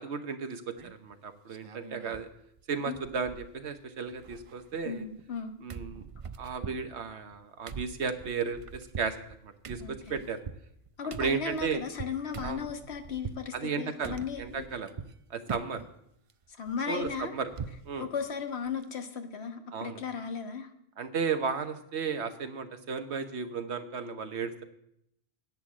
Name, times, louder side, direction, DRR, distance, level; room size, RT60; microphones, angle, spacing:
voice 1, 0.0-2.3 2.7-5.0 5.6-6.0 6.4-9.2 9.4-10.4 11.2-11.8 12.4-12.6 13.5-14.9 15.3-15.8 16.9-17.5 17.8-18.1 19.7-20.0 21.0-24.6, right 5 dB, 85° right, 8 dB, 1.3 m, -34 dB
sound 1, 0.8-1.1 1.5-2.3 2.6-2.7 2.9-3.8 4.1-5.4 5.7-13.5 14.0-15.2 15.5-15.9 16.3-17.9 18.2-18.3 18.7-18.8, right 6 dB, 45° right, 0.4 m, -43 dB
voice 2, 4.8-5.5 9.8-10.2 11.0-14.6 16.6-17.3 18.0-20.7, left 6 dB, 75° left, 6 dB, 1.4 m, -36 dB
10.5 x 7.9 x 7.5 m, 0.76 s
omnidirectional pair, 1.1 m